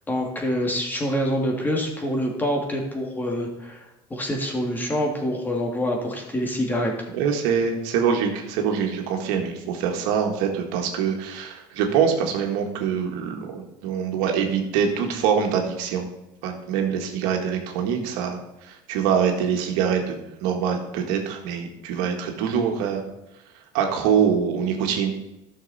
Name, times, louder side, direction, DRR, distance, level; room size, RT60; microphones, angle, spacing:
voice 1, 0.1-3.8 4.1-6.9, equal, 15° left, 1 dB, 2.2 m, -26 dB
voice 2, 7.1-16.1 16.4-23.0 23.7-25.1, right 7 dB, 80° right, 3 dB, 1.7 m, -24 dB
12.0 x 6.5 x 4.2 m, 0.92 s
supercardioid pair, 110°, 13 cm